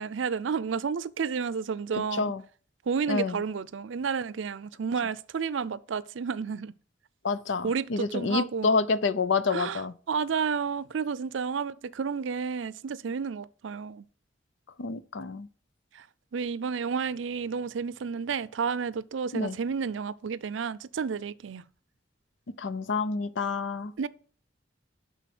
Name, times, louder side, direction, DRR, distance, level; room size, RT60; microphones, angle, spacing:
voice 1, 0.0-2.3 2.9-6.7 7.6-8.7 9.5-9.8 10.1-14.1 15.9-16.1 16.3-21.6 24.0-24.1, right 6 dB, 85° right, 0.5 m, -31 dB
voice 2, 3.1-3.4 7.2-9.9 14.8-15.5 19.3-19.6 22.6-23.9, left 4 dB, 75° left, 0.6 m, -28 dB
11.0 x 4.1 x 6.0 m
head